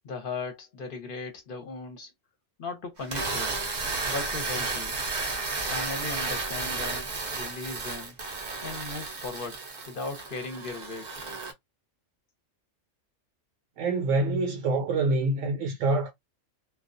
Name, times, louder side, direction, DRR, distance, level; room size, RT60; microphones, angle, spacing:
voice 1, 0.0-2.1 2.6-3.5 4.0-5.0 5.7-8.2 8.6-11.1, left 3 dB, 50° left, 0.8 m, -37 dB
sound 1, 3.0-11.5, right 3 dB, 55° right, 0.5 m, -33 dB
voice 2, 13.8-16.1, right 2 dB, 75° right, 0.9 m, -26 dB
2.3 x 2.2 x 2.4 m
omnidirectional pair, 1.4 m